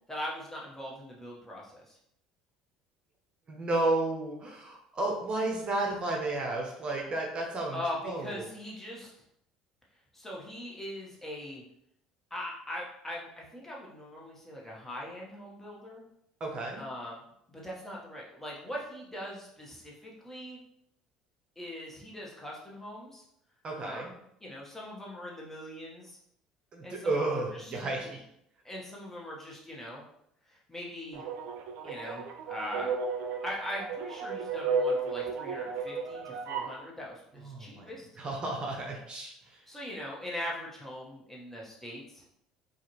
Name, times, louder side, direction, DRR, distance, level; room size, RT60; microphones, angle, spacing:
voice 1, 0.1-2.0 7.7-9.1 10.1-11.6 12.3-16.0 16.8-17.2 17.5-20.6 21.6-23.2 23.8-24.1 24.4-26.2 26.8-27.7 28.6-30.0 30.5-31.2 31.8-32.9 33.4-38.1 39.7-42.2, left 1 dB, 10° left, -3 dB, 1.3 m, -41 dB
voice 2, 3.5-8.5 16.4-16.8 23.6-24.1 26.7-28.2 37.3-37.9 38.2-39.6, right 2 dB, 40° right, 0 dB, 0.8 m, -32 dB
sound 1, 31.1-36.8, right 4 dB, 70° right, 0.5 m, -34 dB
4.5 x 2.5 x 3.1 m, 0.74 s
hypercardioid pair, 75°, 3 cm